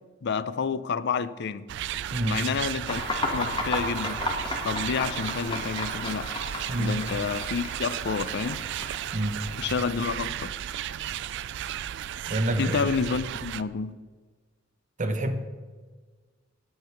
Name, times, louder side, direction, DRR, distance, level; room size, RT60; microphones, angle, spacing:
voice 1, 0.2-1.7 2.2-4.2 4.6-6.3 6.8-8.6 9.6-10.5 12.6-13.9, left 5 dB, 60° left, 0.5 m, -29 dB
sound 1, 1.7-13.6, right 10 dB, 60° right, 0.3 m, -34 dB
sound 2, 2.9-10.4, left 2 dB, 25° left, 1.5 m, -34 dB
voice 2, 6.7-7.0 9.1-9.4 12.3-12.8 15.0-15.3, right 1 dB, 40° right, 0.9 m, -27 dB
9.4 x 8.7 x 5.8 m
head